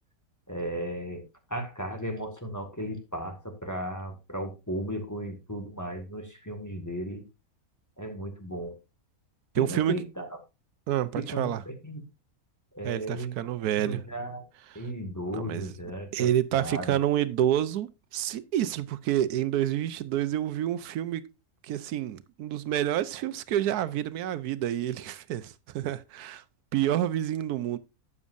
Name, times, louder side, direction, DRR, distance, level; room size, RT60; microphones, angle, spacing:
voice 1, 0.5-1.2 1.5-7.2 8.0-8.8 9.6-10.3 11.1-12.0 12.7-13.3 13.8-14.4 14.7-17.0, equal, 10° left, 1.7 m, -35 dB
voice 2, 9.5-9.9 10.9-11.6 12.8-14.0 14.7-14.8 15.3-15.7 16.1-21.2 21.6-26.4 26.7-27.8, right 11 dB, 85° right, 1.2 m, -28 dB
12.5 x 8.3 x 2.5 m
omnidirectional pair, 1.6 m